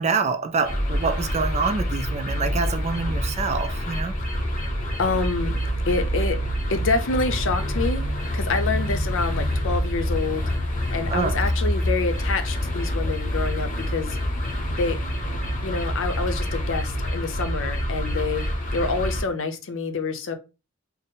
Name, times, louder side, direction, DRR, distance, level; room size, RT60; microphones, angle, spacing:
voice 1, 0.0-4.1 11.1-11.5, right 4 dB, 30° right, 0.3 m, -26 dB
sound 1, 0.6-19.2, equal, 40° left, 0.9 m, -26 dB
voice 2, 5.0-5.6 5.9-6.4 6.7-10.5 10.9-14.2 14.7-15.0 15.6-18.4 18.7-20.3, left 3 dB, 60° left, 0.6 m, -27 dB
3.7 x 2.0 x 3.9 m
head